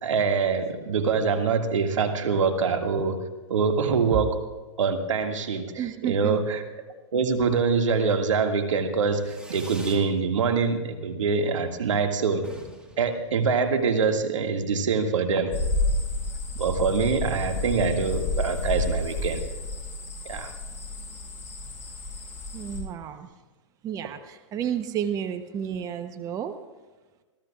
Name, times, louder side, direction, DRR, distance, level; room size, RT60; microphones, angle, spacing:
voice 1, 0.0-3.2 3.5-4.4 4.8-6.6 7.1-12.5 13.0-15.5 16.6-19.4 20.3-20.5, right 5 dB, 80° right, 5 dB, 2.0 m, -24 dB
voice 2, 5.8-6.4 22.5-23.3 23.8-26.6, right 9 dB, 20° right, 8 dB, 0.8 m, -31 dB
Fireworks, 9.2-10.1 10.5-11.0 11.3-11.4 11.6-11.7 12.0-12.1 12.3-14.0, right 1 dB, 5° right, 1.7 m, -46 dB
sound 1, 15.5-22.8, left 2 dB, 15° left, 5.6 m, -30 dB
27.0 x 15.0 x 2.4 m, 1.3 s
hypercardioid pair, 130°, 16 cm